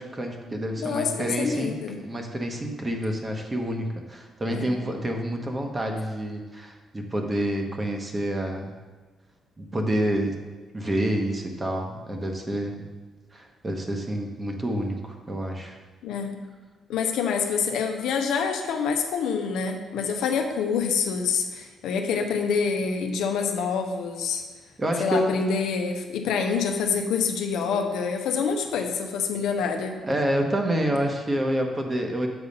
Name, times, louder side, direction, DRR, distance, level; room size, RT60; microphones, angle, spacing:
voice 1, 0.0-8.7 9.6-10.3 10.7-12.9 13.3-15.8 24.8-25.3 30.0-32.3, right 1 dB, 25° right, 3 dB, 1.0 m, -28 dB
voice 2, 0.8-2.0 4.5-4.7 16.0-16.4 16.9-24.4 25.0-30.0, left 6 dB, 85° left, 4 dB, 0.7 m, -26 dB
6.9 x 4.0 x 5.4 m, 1.3 s
cardioid pair, 90°, 0 cm